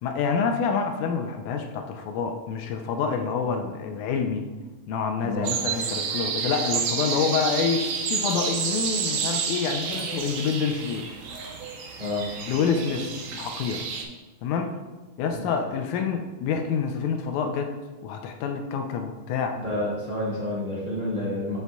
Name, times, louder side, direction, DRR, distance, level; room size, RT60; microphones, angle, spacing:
voice 1, 0.0-4.5 4.9-11.1 12.5-13.8 14.4-14.8 15.2-17.7 18.0-19.6, left 6 dB, 80° left, 5 dB, 1.9 m, -27 dB
voice 2, 5.1-5.5 12.0-12.2 15.3-15.4 19.5-21.6, left 1 dB, 20° right, -8 dB, 1.5 m, -29 dB
sound 1, 5.4-14.1, right 6 dB, 85° right, 2.3 m, -30 dB
8.0 x 6.0 x 2.3 m, 1.2 s
omnidirectional pair, 3.6 m